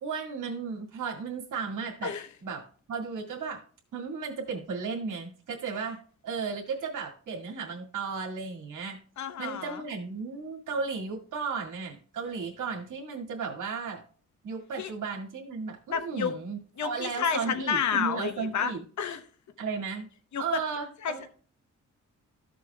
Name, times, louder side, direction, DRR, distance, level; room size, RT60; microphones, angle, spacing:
voice 1, 0.0-2.1 2.4-3.6 3.9-6.0 6.2-9.0 9.4-14.0 14.4-19.2 19.6-20.1 20.4-21.3, right 5 dB, 90° right, 2.0 m, -35 dB
voice 2, 9.2-9.8 14.7-14.9 15.9-16.3 16.8-18.7 19.0-19.2 20.3-20.4 21.0-21.1, left 7 dB, 70° left, 0.9 m, -30 dB
14.5 x 6.4 x 2.3 m
wide cardioid pair, 150°, 30 cm